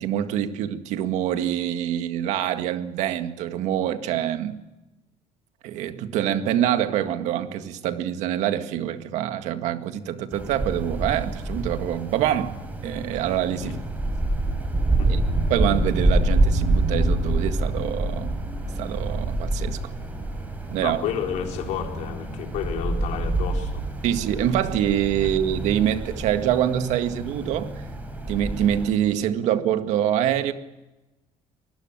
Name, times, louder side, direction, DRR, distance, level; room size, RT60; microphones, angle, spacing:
voice 1, 0.0-4.6 5.6-12.5 12.8-13.8 15.1-15.2 15.5-18.3 18.8-19.8 20.7-21.0 24.0-27.7 28.3-30.5, right 11 dB, 70° right, 8 dB, 1.9 m, -25 dB
Wind, 10.3-28.9, right 2 dB, 15° right, 4.1 m, -27 dB
voice 2, 20.8-23.8, left 9 dB, 70° left, 2 dB, 4.4 m, -31 dB
25.0 x 20.5 x 9.0 m, 1.0 s
cardioid pair, 175°, 12 cm